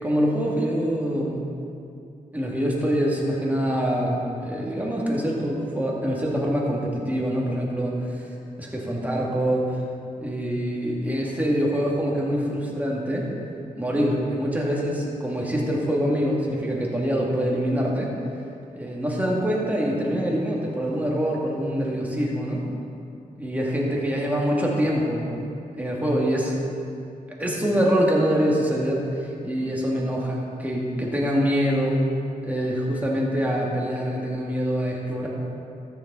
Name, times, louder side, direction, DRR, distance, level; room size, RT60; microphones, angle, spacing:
voice 1, 0.0-1.4 2.3-8.3 8.6-9.8 10.2-13.3 13.7-18.1 18.7-22.6 23.4-25.3 25.8-26.6 27.4-32.0 32.4-35.3, equal, 10° right, -3 dB, 2.4 m, -25 dB
13.5 x 6.9 x 4.1 m, 2.6 s
cardioid pair, 60°, 16 cm